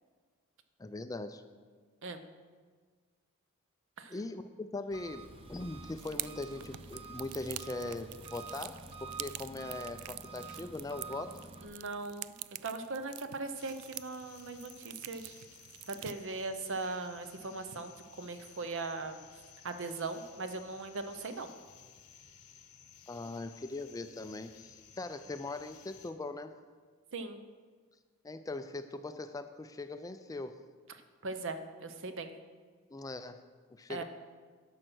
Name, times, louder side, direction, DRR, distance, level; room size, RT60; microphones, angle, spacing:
voice 1, 0.8-1.4 4.1-11.4 23.1-26.5 28.2-30.6 32.9-33.4 33.7-34.0, left 2 dB, 15° left, 9 dB, 0.4 m, -41 dB
Engine, 4.9-11.7, right 3 dB, 25° right, 1.0 m, -48 dB
sound 1, 6.0-16.1, right 16 dB, 80° right, 0.3 m, -46 dB
voice 2, 11.6-12.3 12.6-15.4 15.9-19.2 19.6-21.5 27.1-27.4 31.2-32.3 33.9-34.0, right 3 dB, 60° right, 9 dB, 0.8 m, -39 dB
sound 2, 13.5-26.1, left 8 dB, 85° left, 1.0 m, -57 dB
11.0 x 6.4 x 6.1 m, 1.5 s
head